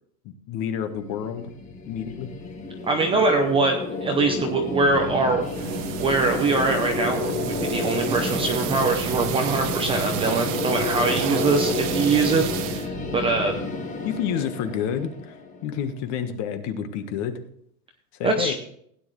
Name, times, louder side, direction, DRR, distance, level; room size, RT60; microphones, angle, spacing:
voice 1, 0.2-1.5 1.9-2.3 14.0-15.3 15.6-17.4 18.2-18.5, left 8 dB, 35° left, 8 dB, 1.4 m, -29 dB
sound 1, 0.9-15.9, left 3 dB, 15° left, 1.5 m, -31 dB
voice 2, 2.8-5.7 6.0-13.5 18.2-18.5, right 3 dB, 10° right, 3 dB, 0.7 m, -23 dB
sound 2, 5.4-12.9, right 9 dB, 35° right, 1.0 m, -31 dB
16.5 x 9.9 x 3.2 m, 0.67 s
supercardioid pair, 155°, 49 cm